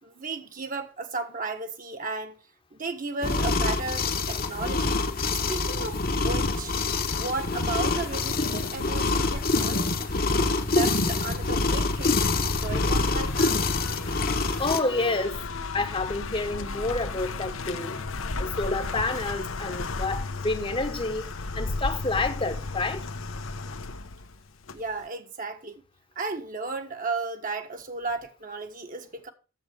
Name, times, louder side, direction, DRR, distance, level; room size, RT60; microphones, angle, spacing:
voice 1, 0.0-2.4 2.7-5.0 5.3-6.7 7.1-10.1 10.7-12.2 12.5-13.6 24.7-25.8 26.1-29.3, right 3 dB, 40° right, 1.4 m, -34 dB
sound 1, 3.2-14.8, left 3 dB, 45° left, 1.1 m, -26 dB
sound 2, 6.9-25.0, left 3 dB, 85° left, 1.0 m, -35 dB
voice 2, 14.6-15.3 15.7-18.0 18.4-21.3 21.5-23.0, left 3 dB, 25° left, 1.0 m, -29 dB
10.5 x 7.5 x 5.1 m
head